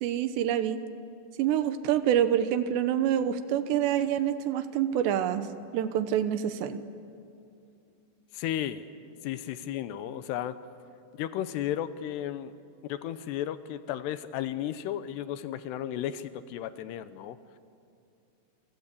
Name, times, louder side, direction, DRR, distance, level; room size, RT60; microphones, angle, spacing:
voice 1, 0.0-0.8 1.4-5.5 5.7-6.8, right 10 dB, 85° right, 10 dB, 3.3 m, -26 dB
voice 2, 8.3-8.9 9.2-10.6 11.1-12.5 12.8-17.4, left 11 dB, 80° left, 12 dB, 3.0 m, -34 dB
28.0 x 24.5 x 8.4 m, 2.6 s
omnidirectional pair, 4.9 m